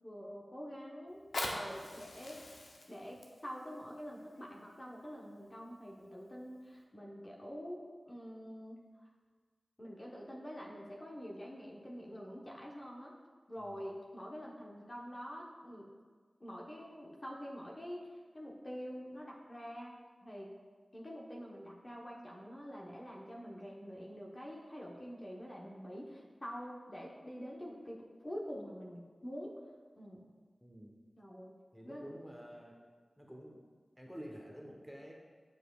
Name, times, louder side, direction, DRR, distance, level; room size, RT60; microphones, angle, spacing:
voice 1, 0.0-1.2 1.5-2.5 2.9-8.8 9.8-13.1 13.5-15.9 16.4-19.9 20.2-20.5 20.9-29.6 29.9-30.2 31.2-31.6 31.8-32.1, equal, 35° left, -3 dB, 1.0 m, -46 dB
Fire, 1.1-6.0 6.7-6.8, left 2 dB, 90° left, 0.7 m, -44 dB
voice 2, 30.6-31.0 31.7-32.8 33.2-33.6 34.0-35.1, equal, ahead, -1 dB, 1.0 m, -49 dB
8.4 x 5.0 x 2.4 m, 1.5 s
wide cardioid pair, 50°, 0 cm